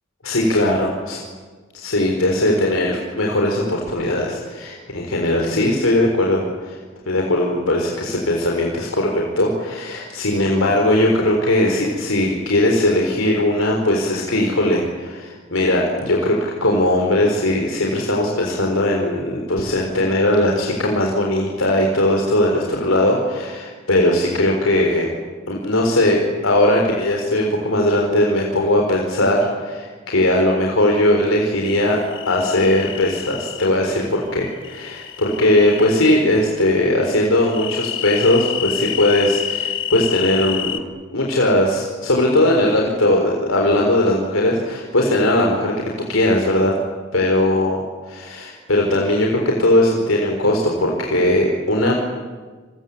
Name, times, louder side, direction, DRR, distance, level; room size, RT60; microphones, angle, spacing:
voice 1, 0.2-1.2 1.7-6.8 7.1-25.1 25.5-32.0 32.3-40.8 41.1-45.7 46.1-46.7 47.1-51.9, left 1 dB, 85° left, 0 dB, 4.2 m, -19 dB
sound 1, 31.6-33.7 34.6-36.2 37.4-40.8, left 11 dB, 65° left, 1.5 m, -28 dB
29.5 x 22.0 x 8.6 m, 1.4 s
head